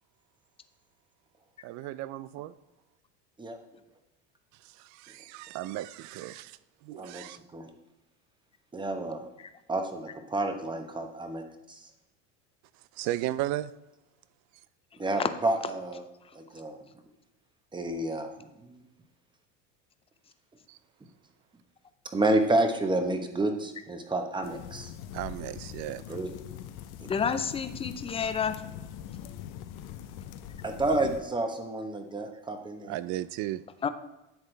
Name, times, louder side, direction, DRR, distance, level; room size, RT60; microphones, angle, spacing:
voice 1, 1.6-2.5 4.6-7.4 12.9-13.7 20.7-20.8 25.1-26.2 32.8-33.6, right 14 dB, 55° right, 17 dB, 0.5 m, -35 dB
voice 2, 8.7-9.2 9.7-11.4 11.7-11.8 15.0-16.0 16.3-16.8 17.7-18.3 18.6-18.8 22.1-24.9 26.1-26.3 27.0-27.1 30.6-32.9, right 2 dB, 15° right, 6 dB, 1.0 m, -29 dB
sound 1, 24.4-31.2, left 10 dB, 65° left, 0.7 m, -42 dB
voice 3, 27.1-28.6 33.8-33.9, left 6 dB, 15° left, 10 dB, 0.5 m, -29 dB
10.5 x 7.5 x 3.3 m, 0.94 s
supercardioid pair, 125°, 35 cm